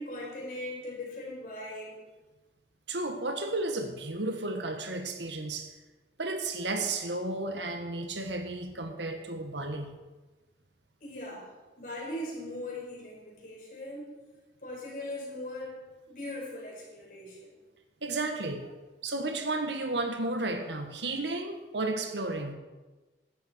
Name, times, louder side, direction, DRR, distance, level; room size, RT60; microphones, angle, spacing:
voice 1, 0.0-2.0 11.0-11.5 11.8-14.1 14.6-15.8 16.1-17.6, left 1 dB, 50° left, -3 dB, 5.3 m, -39 dB
voice 2, 2.9-5.7 6.2-9.9 18.0-18.7 19.0-22.5, right 2 dB, 90° right, 6 dB, 1.7 m, -33 dB
15.5 x 12.0 x 4.6 m, 1.2 s
head